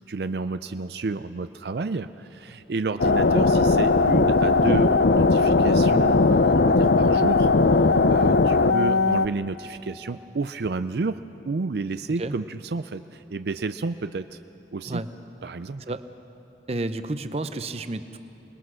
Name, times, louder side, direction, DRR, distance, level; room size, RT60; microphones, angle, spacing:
voice 1, 0.1-7.5 7.8-14.4 14.7-15.0 15.4-15.8, right 3 dB, 70° right, 11 dB, 0.5 m, -31 dB
sound 1, 3.0-9.3, left 3 dB, 65° left, 0.6 m, -19 dB
voice 2, 16.7-18.2, right 2 dB, 35° right, 10 dB, 0.7 m, -30 dB
27.5 x 20.0 x 6.3 m, 2.9 s
head